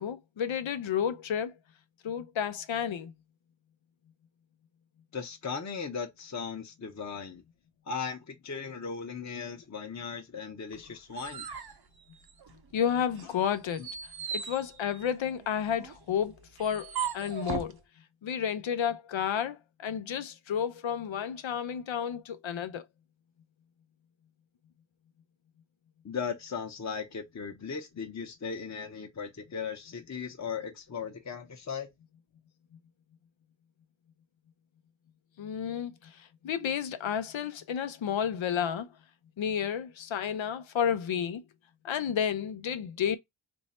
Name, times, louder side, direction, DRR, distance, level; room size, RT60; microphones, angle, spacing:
voice 1, 0.0-1.5 2.0-3.1 12.7-13.8 14.3-17.8 18.2-22.8 35.4-38.9 39.4-41.4 41.8-43.2, left 8 dB, 85° left, 0.7 m, -31 dB
voice 2, 5.1-7.4 7.9-11.5 26.0-31.9, left 6 dB, 35° left, 0.8 m, -37 dB
sound 1, 10.7-12.7 13.1-17.8, right 7 dB, 55° right, 0.9 m, -39 dB
3.1 x 2.7 x 4.1 m
cardioid pair, 60°, 45 cm